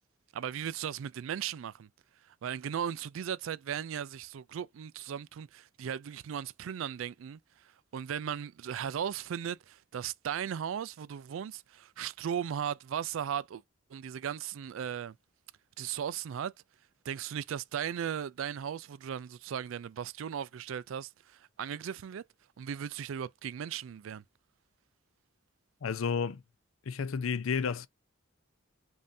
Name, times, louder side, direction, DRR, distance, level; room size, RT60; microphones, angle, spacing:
voice 1, 0.3-1.9 2.4-7.4 7.9-13.6 13.9-15.2 15.8-16.5 17.1-22.2 22.6-24.2, right 8 dB, 75° right, 0.4 m, -37 dB
voice 2, 25.8-26.4 26.9-27.9, left 6 dB, 90° left, 0.5 m, -31 dB
5.3 x 2.7 x 2.7 m
head